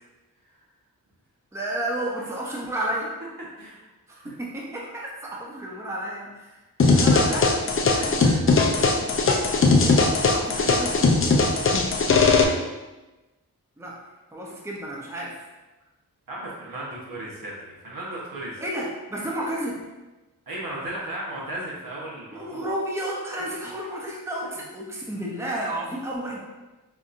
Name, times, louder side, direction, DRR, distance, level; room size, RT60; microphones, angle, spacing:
voice 1, 1.5-3.1 4.1-7.5 7.8-9.1 9.8-11.4 13.8-14.0 14.3-15.4 18.6-19.8 22.3-26.4, right 1 dB, 10° right, -3 dB, 0.6 m, -32 dB
voice 2, 3.6-4.3 16.3-18.6 20.5-22.7 24.4-24.5, right 1 dB, 70° right, -5 dB, 1.1 m, -36 dB
sound 1, 6.8-12.4, left 3 dB, 40° left, 0.5 m, -19 dB
5.1 x 2.6 x 2.5 m, 1.1 s
wide cardioid pair, 85°, 35 cm